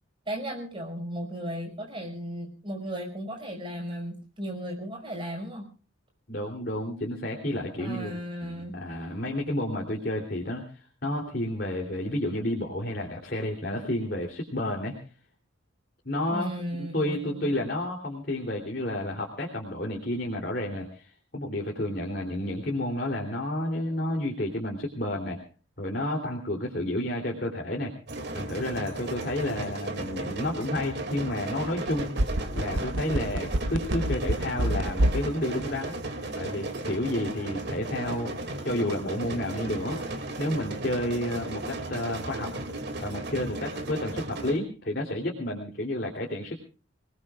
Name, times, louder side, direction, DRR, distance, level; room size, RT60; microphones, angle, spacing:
voice 1, 0.3-5.6 7.8-8.7 16.3-17.6, equal, 25° right, 2 dB, 5.6 m, -35 dB
voice 2, 6.3-8.1 8.4-14.9 16.0-25.4 25.8-27.9 28.3-32.1 32.5-36.0 36.3-38.3 38.6-40.0 40.4-42.5 43.0-46.6, left 1 dB, 50° left, 0 dB, 3.3 m, -31 dB
sound 1, 28.1-44.6, right 2 dB, 55° right, 2.6 m, -35 dB
sound 2, 31.9-35.3 35.6-35.7, right 1 dB, 75° right, 1.0 m, -25 dB
27.0 x 19.5 x 2.5 m, 0.37 s
head